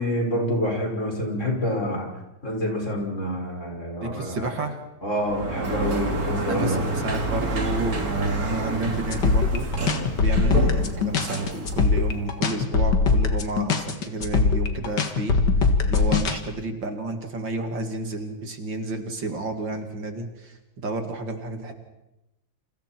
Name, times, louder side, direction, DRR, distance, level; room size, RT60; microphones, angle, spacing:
voice 1, 0.0-2.1 2.4-4.5 5.0-6.8, equal, 35° left, 0 dB, 6.3 m, -27 dB
voice 2, 4.0-4.8 6.4-9.7 10.2-21.7, right 2 dB, 65° right, 5 dB, 2.9 m, -31 dB
Sliding door, 5.2-12.4, right 2 dB, 45° right, 3.1 m, -29 dB
sound 1, 9.1-16.4, left 4 dB, 60° left, 2.4 m, -21 dB
29.5 x 29.0 x 4.6 m, 0.95 s
omnidirectional pair, 2.2 m